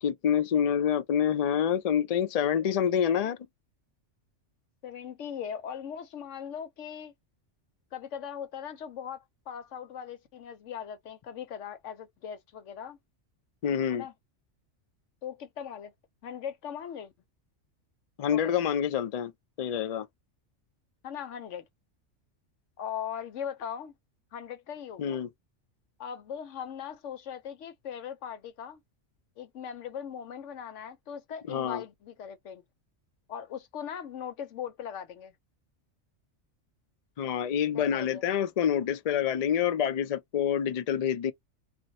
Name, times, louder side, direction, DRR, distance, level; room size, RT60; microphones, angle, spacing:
voice 1, 0.0-3.4 13.6-14.1 18.2-19.3 19.6-20.1 25.0-25.3 31.5-31.8 37.2-41.3, left 8 dB, 65° left, 0.3 m, -27 dB
voice 2, 4.8-7.1 7.9-13.0 13.9-14.1 15.2-15.9 16.2-17.1 18.3-18.6 21.0-21.6 22.8-23.9 24.3-25.2 26.0-28.8 29.4-32.6 33.3-35.3 37.7-38.2, left 8 dB, 85° left, 1.1 m, -39 dB
2.5 x 2.1 x 3.9 m
omnidirectional pair, 1.2 m